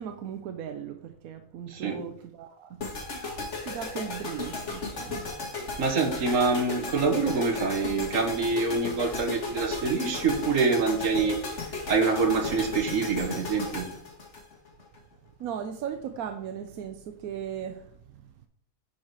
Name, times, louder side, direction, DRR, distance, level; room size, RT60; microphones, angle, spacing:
voice 1, 0.0-2.8 3.6-5.3 15.4-18.5, right 8 dB, 90° right, 1.1 m, -37 dB
sound 1, 2.8-15.0, left 3 dB, 55° left, 2.0 m, -35 dB
voice 2, 5.8-11.4 11.9-13.9, right 4 dB, 65° right, 1.6 m, -25 dB
9.7 x 4.3 x 4.7 m
omnidirectional pair, 1.5 m